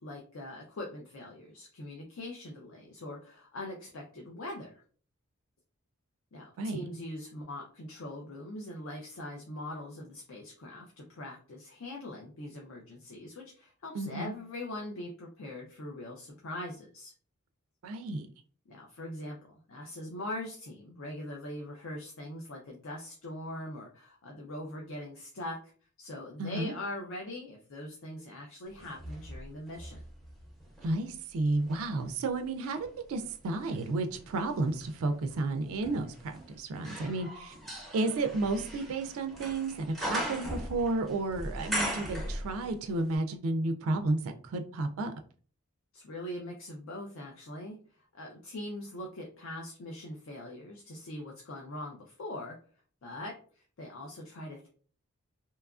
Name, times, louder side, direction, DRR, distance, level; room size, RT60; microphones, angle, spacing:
voice 1, 0.0-4.8 6.3-17.1 18.7-25.7 26.0-30.0 41.9-42.1 45.9-52.6 53.0-54.7, left 1 dB, 65° left, 0 dB, 0.5 m, -42 dB
voice 2, 13.9-14.3 17.8-18.3 26.4-26.7 30.8-37.5 37.9-45.1, right 2 dB, 75° right, 6 dB, 0.3 m, -32 dB
sound 1, 28.8-31.0 31.5-42.9 43.1-43.2, equal, ahead, 0.5 m, -40 dB
2.8 x 2.3 x 2.3 m, 0.43 s
head